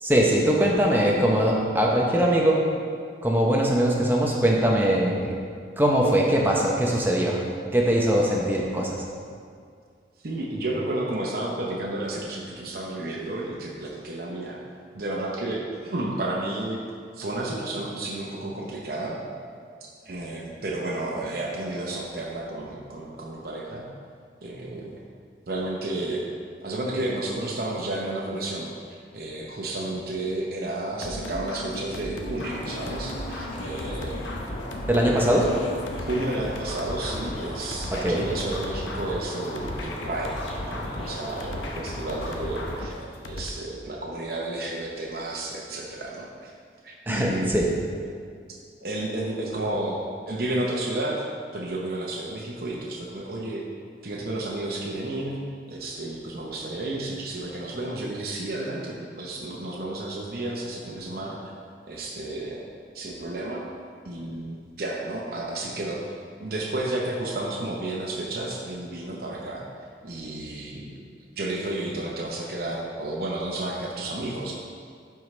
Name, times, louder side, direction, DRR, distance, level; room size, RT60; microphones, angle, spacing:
voice 1, 0.0-2.6 3.2-5.3 5.8-7.4 7.7-9.0 34.9-35.5 38.0-38.3 47.1-47.7, right 1 dB, 10° right, -2 dB, 0.7 m, -21 dB
voice 2, 10.2-14.6 14.9-16.8 17.1-19.2 20.0-23.9 24.4-25.0 25.5-26.2 26.6-34.2 35.5-35.6 36.1-43.0 43.3-46.5 46.8-47.5 48.8-51.2 51.5-53.6 54.0-55.4 55.7-61.4 61.9-62.6 62.9-63.6 64.0-66.0 66.4-69.6 70.0-71.0 71.3-74.5, right 2 dB, 55° right, -3 dB, 0.8 m, -31 dB
sound 1, 31.0-43.5, left 1 dB, 90° left, 0.8 m, -36 dB
sound 2, 32.5-42.9, left 1 dB, 30° left, 0.9 m, -37 dB
12.0 x 4.7 x 3.2 m, 2.1 s
head